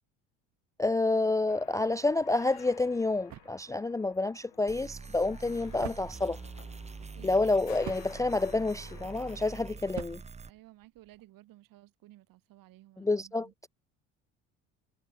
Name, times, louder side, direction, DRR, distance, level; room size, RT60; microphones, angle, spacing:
voice 1, 0.8-6.4 7.2-10.2 13.0-13.7, left 2 dB, 10° left, 0.4 m, -29 dB
sound 1, 1.5-9.6, left 21 dB, 70° left, 6.6 m, -54 dB
sound 2, 2.5-11.3, right 12 dB, 50° right, 1.5 m, -49 dB
sound 3, 4.7-10.5, right 4 dB, 20° right, 1.0 m, -45 dB
voice 2, 7.0-7.4 10.4-13.5, right 16 dB, 65° right, 5.6 m, -56 dB
hypercardioid pair, 70°, 37 cm